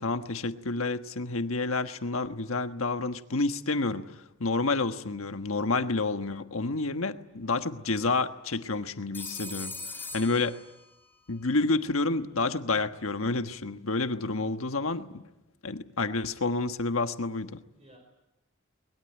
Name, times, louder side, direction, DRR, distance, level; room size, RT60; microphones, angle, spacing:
voice 1, 0.0-10.6 11.3-15.3 15.6-17.6, left 3 dB, 90° left, 8 dB, 1.4 m, -29 dB
Telephone, 9.1-11.2, left 3 dB, 10° left, 2.6 m, -41 dB
voice 2, 10.1-10.5 14.1-14.5 17.7-18.0, right 1 dB, 30° right, 2 dB, 5.5 m, -55 dB
23.0 x 21.5 x 9.0 m, 0.91 s
head